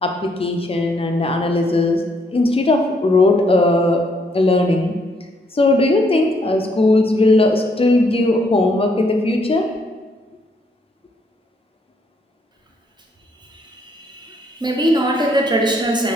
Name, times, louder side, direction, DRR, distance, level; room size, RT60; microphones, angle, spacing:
voice 1, 0.0-2.0 2.3-4.0 4.3-4.9 5.6-9.7, left 2 dB, 30° left, 4 dB, 0.4 m, -17 dB
voice 2, 13.7-16.1, right 1 dB, 25° right, 0 dB, 0.5 m, -20 dB
3.1 x 2.7 x 2.9 m, 1.3 s
wide cardioid pair, 60°, 19 cm